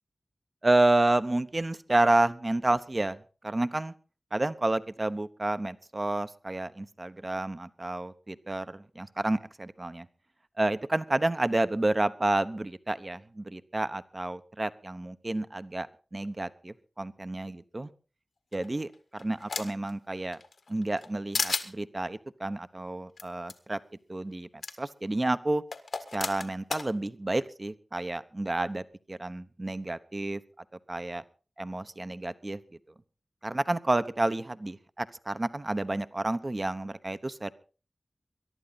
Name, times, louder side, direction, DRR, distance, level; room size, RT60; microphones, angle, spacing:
voice 1, 0.6-3.2 3.4-3.9 4.3-10.1 10.6-17.9 18.5-20.4 20.7-23.8 24.1-24.5 24.8-25.6 26.1-28.8 29.1-30.4 30.9-31.2 31.6-32.6 33.4-37.5, right 2 dB, 40° right, 13 dB, 0.9 m, -30 dB
sound 1, 18.5-19.9 20.3-21.1 21.3-21.7 23.2-23.3 23.5-23.6 24.6-24.7 25.7-26.9, left 4 dB, 90° left, 1.6 m, -33 dB
22.0 x 11.5 x 4.0 m, 0.36 s
wide cardioid pair, 55°, 0 cm